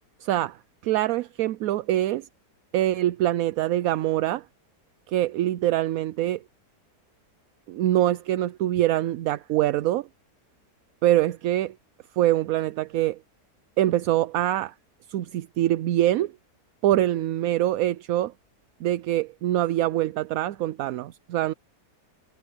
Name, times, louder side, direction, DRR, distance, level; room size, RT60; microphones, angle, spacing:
voice 1, 0.2-2.3 2.7-4.4 5.1-6.4 7.7-10.1 11.0-11.7 12.2-13.2 13.8-14.7 15.1-16.3 16.8-18.3 18.8-21.5, right 13 dB, 70° right, 0.9 m, -24 dB
omnidirectional pair, 1.8 m